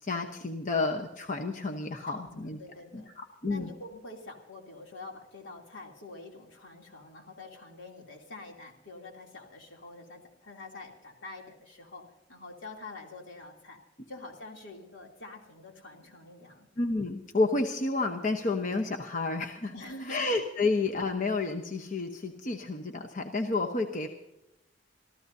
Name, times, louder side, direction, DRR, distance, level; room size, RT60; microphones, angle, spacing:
voice 1, 0.0-2.6 2.9-3.7 16.8-19.7 20.1-24.1, left 3 dB, 45° left, 3 dB, 1.0 m, -30 dB
voice 2, 2.1-3.1 3.5-13.8 14.1-16.7 19.6-20.3, left 2 dB, 75° left, 1 dB, 3.0 m, -46 dB
26.5 x 14.0 x 2.7 m, 0.88 s
head